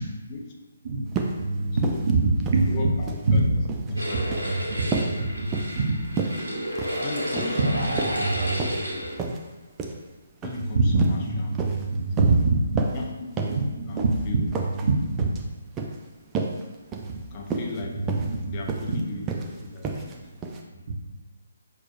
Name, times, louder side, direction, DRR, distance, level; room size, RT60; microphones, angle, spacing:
voice 1, 0.8-2.9 3.3-6.0 7.6-8.8 10.7-13.0 13.5-14.3 14.8-15.2 17.0-17.1 18.0-18.5, right 3 dB, 50° right, 1 dB, 0.8 m, -25 dB
sound 1, 1.1-1.4 1.8-2.1 2.4-3.3 3.6-3.9 4.2-4.5 4.9-5.1 5.5-5.8 6.2-6.4 6.7-7.1 7.4-7.6 8.0-8.8 9.2-9.4 9.8-10.0 10.4-10.6 11.0-11.2 11.5-11.8 12.2-12.4 12.8-13.0 13.4-13.6 14.0-14.2 14.5-14.9 15.2-15.4 15.8-15.9 16.3-16.6 16.9-17.1 17.5-17.8 18.1-18.3 18.7-19.0 19.3-19.5 19.8-20.1 20.4-20.6, right 4 dB, 15° right, 0.4 m, -30 dB
voice 2, 2.6-3.4 3.9-4.8 7.0-8.4 10.4-11.5 12.0-12.1 12.9-13.6 13.9-14.5 17.2-18.0 18.5-20.3, left 3 dB, 30° left, 0 dB, 0.6 m, -38 dB
sound 2, 4.0-9.1, equal, 80° right, 1.5 m, -31 dB
6.0 x 3.2 x 2.5 m, 1.2 s
figure-of-eight pair, 140°, 0 cm